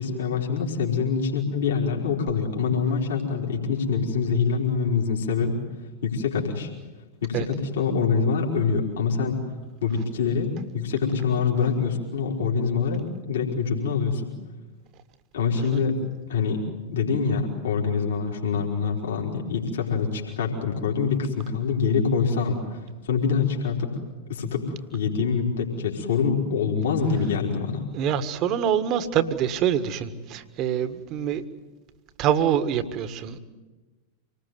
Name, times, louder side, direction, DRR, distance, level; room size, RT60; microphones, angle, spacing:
voice 1, 0.0-5.6 6.0-6.7 7.2-9.4 9.8-14.3 15.3-16.0 16.3-16.6 16.9-23.9 24.3-27.8, left 5 dB, 60° left, -1 dB, 4.1 m, -25 dB
voice 2, 27.9-31.4 32.2-33.4, right 9 dB, 35° right, 13 dB, 1.6 m, -25 dB
26.5 x 19.5 x 9.5 m, 1.2 s
figure-of-eight pair, 90°, 0 cm